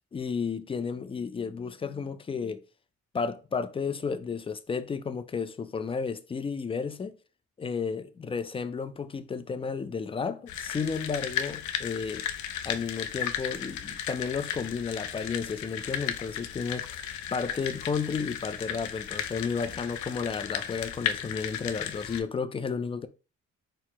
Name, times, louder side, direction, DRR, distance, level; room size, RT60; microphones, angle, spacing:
voice 1, 0.1-2.6 3.1-7.2 7.6-12.3 12.6-23.1, left 5 dB, 20° left, 0.3 m, -32 dB
sound 1, 10.5-22.2, left 9 dB, 70° left, 0.5 m, -35 dB
4.4 x 2.0 x 4.0 m
cardioid pair, 90°, 30 cm